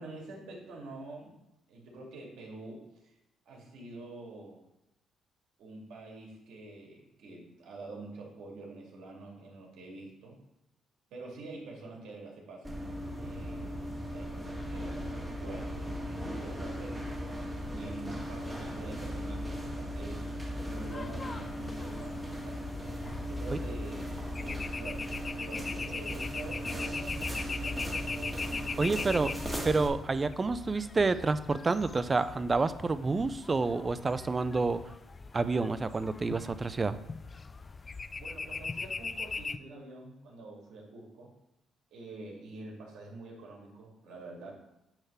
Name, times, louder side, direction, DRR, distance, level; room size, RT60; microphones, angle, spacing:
voice 1, 0.0-1.4 1.7-3.1 3.5-4.6 5.6-10.4 11.1-12.8 13.1-13.7 14.1-22.6 23.2-29.2 38.2-41.3 41.9-44.5, right 2 dB, 80° right, -2 dB, 2.4 m, -46 dB
sound 1, 12.6-29.9, equal, 5° right, 1.9 m, -37 dB
sound 2, 20.6-39.6, left 4 dB, 30° left, 0.3 m, -41 dB
voice 2, 28.8-29.3 29.6-34.8 35.3-37.0, right 3 dB, 30° right, 13 dB, 0.5 m, -29 dB
8.9 x 3.7 x 5.6 m, 0.89 s
cardioid pair, 90°, 0 cm